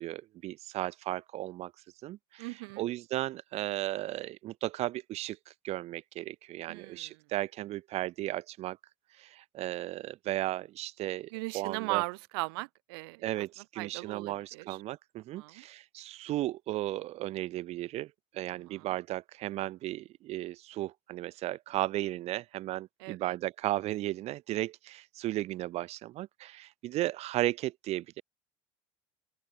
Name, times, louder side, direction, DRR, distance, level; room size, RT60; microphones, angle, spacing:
voice 1, 0.0-1.7 2.0-2.5 2.8-8.8 9.2-12.0 13.2-28.2, right 15 dB, 55° right, 1.8 m, -35 dB
voice 2, 2.4-2.9 6.7-7.2 11.3-13.4 13.8-14.8 15.3-15.6 18.5-18.8 23.0-23.3, right 28 dB, 75° right, 1.6 m, -38 dB
open air
hypercardioid pair, 85°, 13 cm